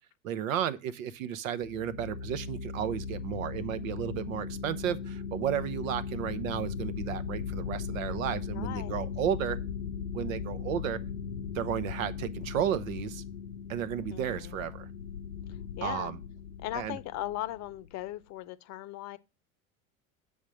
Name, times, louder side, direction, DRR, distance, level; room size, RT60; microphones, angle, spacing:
voice 1, 0.2-9.6 10.1-11.0 11.5-13.2 13.7-14.9 15.8-16.2 16.7-17.0, right 10 dB, 70° right, 0.8 m, -33 dB
sound 1, 1.6-17.9, left 6 dB, 80° left, 0.6 m, -38 dB
voice 2, 8.5-9.1 14.1-14.7 15.5-16.1 16.6-19.2, left 14 dB, 40° left, 0.7 m, -38 dB
7.2 x 3.6 x 6.3 m
hypercardioid pair, 75°, 42 cm